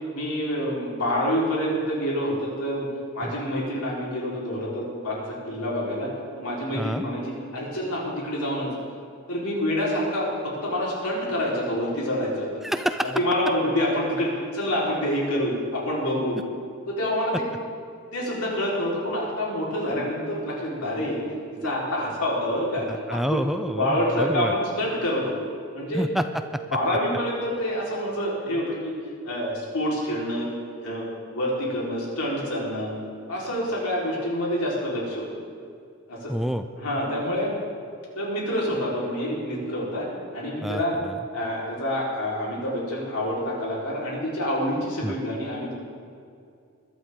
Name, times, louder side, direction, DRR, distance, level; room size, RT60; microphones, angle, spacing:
voice 1, 0.1-2.9 3.1-8.7 9.3-12.5 13.0-16.4 16.9-17.4 18.1-21.2 21.6-23.4 23.7-25.3 25.7-26.0 26.7-29.0 29.2-30.5 30.8-31.1 31.3-32.9 33.3-35.3 36.1-36.3 36.8-37.5 38.2-41.0 41.3-45.7, equal, 80° left, -5 dB, 4.2 m, -27 dB
voice 2, 12.6-13.1 21.6-21.7 23.1-24.5 25.9-26.2 36.3-36.6 40.6-41.1 45.0-45.1, equal, ahead, 9 dB, 0.4 m, -27 dB
21.5 x 12.0 x 3.7 m, 2.3 s
head